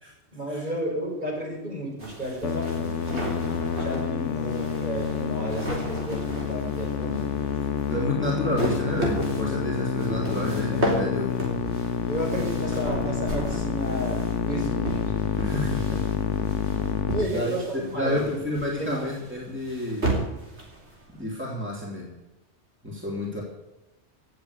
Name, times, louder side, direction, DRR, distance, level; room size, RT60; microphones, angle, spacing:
voice 1, 0.3-3.4 3.8-7.5 12.1-15.5 17.1-18.4 18.8-19.0, right 1 dB, 40° right, -1 dB, 5.3 m, -32 dB
sound 1, 2.0-21.2, right 1 dB, 65° right, 4.0 m, -34 dB
Musical instrument, 2.4-17.2, left 7 dB, 80° left, 1.1 m, -28 dB
voice 2, 7.6-11.3 12.3-12.4 15.4-16.0 17.2-20.1 21.1-22.2 22.8-23.4, left 1 dB, 10° right, -3 dB, 3.2 m, -30 dB
17.5 x 8.0 x 8.2 m, 1.0 s
omnidirectional pair, 1.2 m